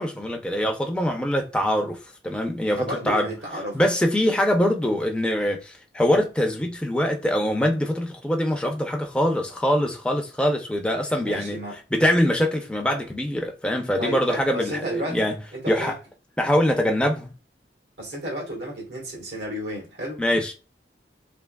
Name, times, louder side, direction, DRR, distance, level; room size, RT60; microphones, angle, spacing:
voice 1, 0.0-3.3 3.7-11.6 11.9-15.4 15.7-15.9 16.4-17.3 20.2-20.5, equal, 5° left, 0.5 m, -23 dB
voice 2, 2.7-3.8 11.2-11.8 14.0-15.2 15.5-16.0 18.0-20.2, right 1 dB, 80° right, 1.4 m, -32 dB
3.4 x 2.9 x 2.2 m
head